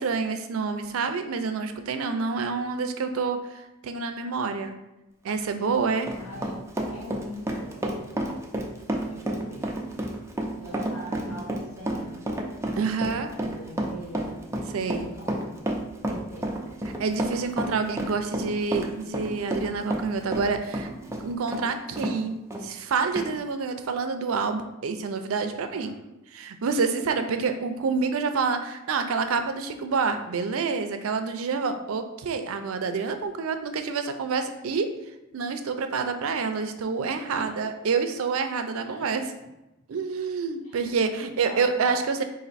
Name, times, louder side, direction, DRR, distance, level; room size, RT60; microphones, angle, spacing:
voice 1, 0.0-4.8 5.2-6.1 12.8-13.3 14.7-15.1 17.0-22.4 22.6-25.9 26.3-34.9 35.3-39.2 39.9-42.2, right 5 dB, 80° right, 7 dB, 0.4 m, -28 dB
Run, 5.5-22.2 22.5-22.6 23.2-23.3, right 1 dB, 15° right, 0.4 m, -30 dB
voice 2, 6.2-6.6 6.9-8.5 9.1-9.8 10.6-12.2 13.1-14.4 15.1-15.7 16.0-16.6 25.7-25.9 27.3-27.5 37.3-37.7 38.8-39.2 40.6-42.0, equal, 90° left, -4 dB, 1.5 m, -42 dB
4.1 x 2.6 x 4.0 m, 0.94 s
head